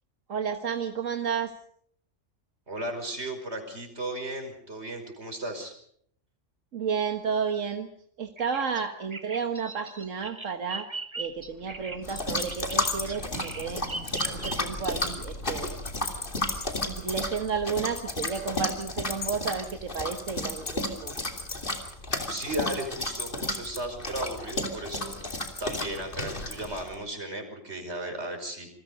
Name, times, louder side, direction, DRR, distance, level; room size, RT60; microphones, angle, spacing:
voice 1, 0.3-1.5 6.7-7.9 8.2-10.9 11.2-15.8 16.8-21.1, right 6 dB, 90° right, 6 dB, 1.7 m, -32 dB
voice 2, 2.7-5.7 22.3-28.7, right 1 dB, 60° right, 5 dB, 5.7 m, -35 dB
Bird vocalization bird call bird song, 8.4-14.9, right 3 dB, 25° right, 1.3 m, -39 dB
sound 1, 11.2-19.1 19.3-19.4, left 1 dB, 85° left, 4.6 m, -44 dB
sound 2, 12.0-26.9, left 2 dB, 45° left, 3.2 m, -33 dB
27.5 x 22.5 x 5.4 m, 0.65 s
omnidirectional pair, 1.3 m